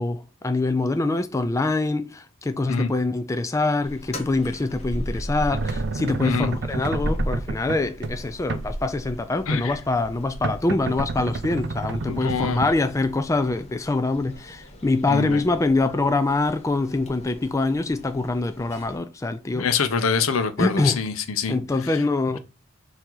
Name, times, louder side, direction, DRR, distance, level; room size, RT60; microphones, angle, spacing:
voice 1, 0.0-19.7 20.6-21.0 21.5-22.4, left 2 dB, 15° left, 0.3 m, -24 dB
sound 1, 3.8-19.0, equal, 30° left, 0.9 m, -37 dB
sound 2, 5.5-13.5, right 3 dB, 55° right, 0.4 m, -31 dB
voice 2, 9.5-9.8 12.1-12.6 15.1-15.4 19.5-21.6 21.8-21.9, left 5 dB, 85° left, 0.7 m, -25 dB
4.6 x 2.8 x 3.8 m
head